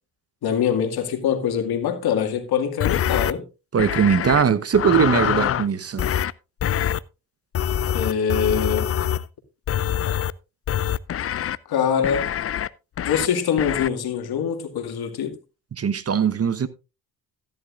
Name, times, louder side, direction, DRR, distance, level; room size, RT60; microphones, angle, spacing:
voice 1, 0.4-3.5 7.9-8.9 11.7-12.3 13.1-15.4, left 7 dB, 75° left, 2.1 m, -23 dB
sound 1, 2.8-3.3 3.8-4.4 4.7-5.7 6.0-6.3 6.6-7.0 7.6-9.3 9.7-10.3 10.7-11.6 12.0-12.7 13.0-13.3 13.6-13.9, left 10 dB, 40° left, 0.5 m, -24 dB
voice 2, 3.7-6.0 15.8-16.7, right 7 dB, 40° right, 1.1 m, -20 dB
14.0 x 10.5 x 2.5 m
supercardioid pair, 70°, 38 cm